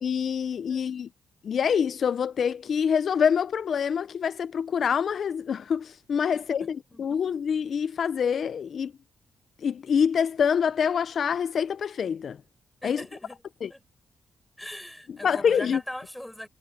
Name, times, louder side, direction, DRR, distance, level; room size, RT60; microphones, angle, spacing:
voice 1, 0.0-1.1 1.4-8.9 9.6-12.4 12.8-13.0 13.6-13.7 15.1-15.8, left 7 dB, 65° left, 0.6 m, -26 dB
voice 2, 12.8-13.4 13.7-13.8 14.6-16.5, left 1 dB, 5° left, 6.1 m, -40 dB
cardioid pair, 80°, 0 cm